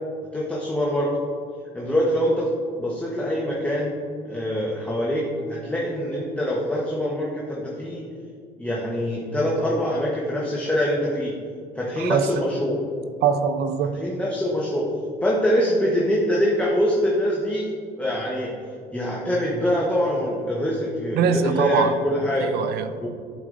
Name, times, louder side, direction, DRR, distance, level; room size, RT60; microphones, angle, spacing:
voice 1, 0.3-1.1 1.7-2.5 2.8-3.9 4.2-5.2 5.5-8.0 8.6-11.3 11.7-12.8 14.0-14.9 15.2-18.5 18.9-22.5 23.0-23.1, equal, 10° left, -4 dB, 1.0 m, -24 dB
voice 2, 12.0-12.4 13.2-14.0 21.1-22.0 22.4-22.9, right 7 dB, 70° right, 10 dB, 0.5 m, -23 dB
11.0 x 4.6 x 2.5 m, 2.2 s
cardioid pair, 110°, 17 cm